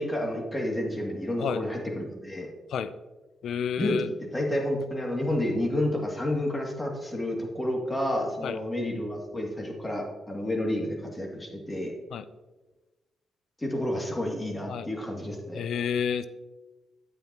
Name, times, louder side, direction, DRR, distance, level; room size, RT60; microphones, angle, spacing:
voice 1, 0.0-2.5 3.8-11.9 13.6-15.6, left 1 dB, 20° left, 0 dB, 2.4 m, -30 dB
voice 2, 3.4-4.1 8.4-8.6 12.1-12.3 14.7-14.9 15.5-16.3, left 7 dB, 75° left, 14 dB, 0.4 m, -30 dB
8.6 x 8.0 x 2.9 m, 1.2 s
supercardioid pair, 50°, 0 cm